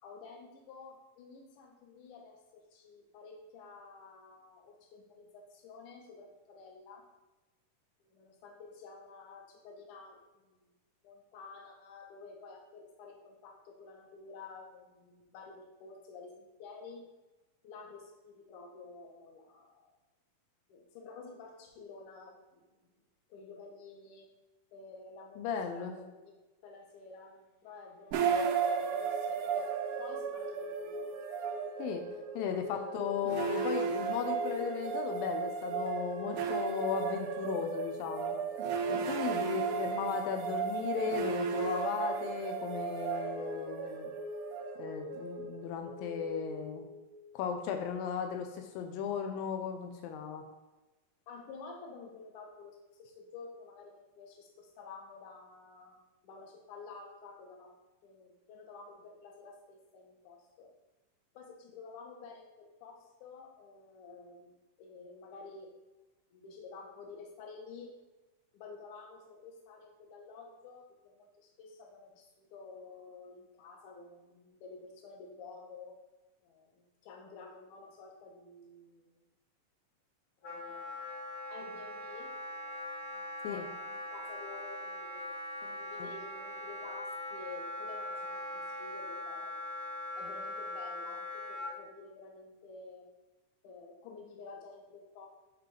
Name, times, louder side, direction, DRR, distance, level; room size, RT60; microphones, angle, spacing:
voice 1, 0.0-7.0 8.0-10.7 11.0-17.0 17.6-19.9 20.7-22.7 23.3-24.3 24.7-26.3 26.6-29.7 30.0-31.1 32.8-32.9 33.5-33.6 51.3-57.7 58.0-60.7 61.3-64.5 64.8-65.7 66.3-67.9 68.5-76.0 76.4-79.2 80.4-80.9 81.5-82.3 82.6-82.8 83.1-89.6 90.2-93.1 93.6-95.3, left 4 dB, 70° left, 1 dB, 2.3 m, -51 dB
voice 2, 25.4-25.9 31.8-32.0 32.4-38.4 38.9-44.1 44.8-46.8 47.3-50.4 83.4-83.6 86.0-86.1, left 7 dB, 85° left, 5 dB, 2.4 m, -36 dB
sound 1, 28.1-47.2, right 5 dB, 80° right, 2.0 m, -35 dB
Wind instrument woodwind instrument, 80.4-91.7, left 1 dB, 50° left, 1.3 m, -41 dB
10.0 x 3.7 x 3.5 m, 1.1 s
omnidirectional pair, 4.0 m